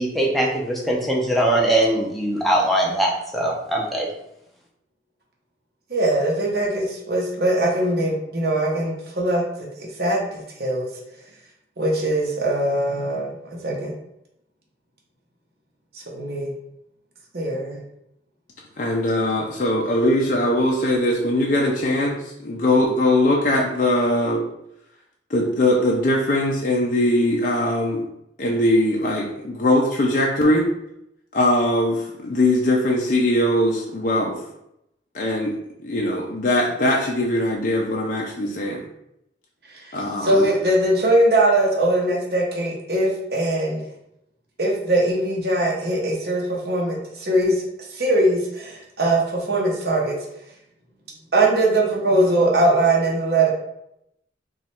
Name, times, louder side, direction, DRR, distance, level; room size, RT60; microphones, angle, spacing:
voice 1, 0.0-4.1, right 1 dB, ahead, -2 dB, 0.6 m, -21 dB
voice 2, 5.9-9.4 10.0-10.9 11.8-13.9 15.9-16.5 17.3-17.8 39.7-39.8 40.2-43.8 44.6-50.2 51.3-53.5, right 1 dB, 60° right, -2 dB, 0.7 m, -21 dB
voice 3, 18.8-24.4 25.3-28.0 28.4-30.7 31.3-34.4 35.1-35.5 35.8-38.8 39.9-40.5, left 1 dB, 45° left, -2 dB, 0.4 m, -21 dB
3.0 x 2.3 x 4.2 m, 0.81 s
head